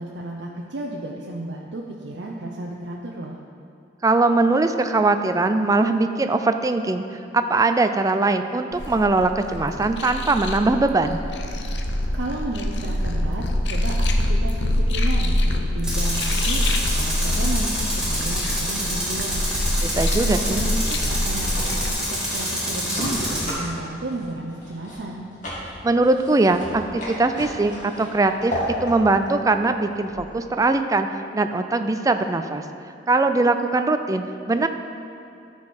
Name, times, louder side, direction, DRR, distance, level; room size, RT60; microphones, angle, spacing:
voice 1, 0.0-3.4 12.1-19.4 20.1-25.2, right 2 dB, 85° right, -1 dB, 0.6 m, -33 dB
voice 2, 4.0-7.0 7.3-11.2 19.8-20.6 25.8-28.5 28.8-31.1 31.3-32.6 33.1-34.7, right 3 dB, 20° right, 8 dB, 0.4 m, -21 dB
sound 1, 8.7-21.9, left 1 dB, 70° left, 0.7 m, -25 dB
Tools, 15.8-23.5, equal, 5° right, 1.9 m, -27 dB
sound 2, 21.2-30.7, equal, 45° left, 2.1 m, -35 dB
13.0 x 4.8 x 4.3 m, 2.7 s
head